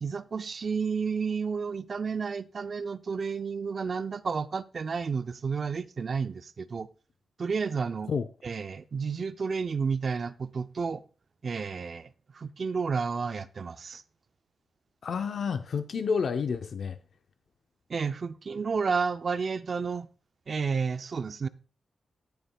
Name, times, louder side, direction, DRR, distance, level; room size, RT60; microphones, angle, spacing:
voice 1, 0.0-6.9 7.4-8.1 8.4-11.0 11.4-14.0 17.9-20.1 20.5-21.5, right 5 dB, 45° right, 0.4 m, -31 dB
voice 2, 15.0-17.0, left 6 dB, 60° left, 0.6 m, -29 dB
16.5 x 7.0 x 2.3 m
wide cardioid pair, 125°, 0 cm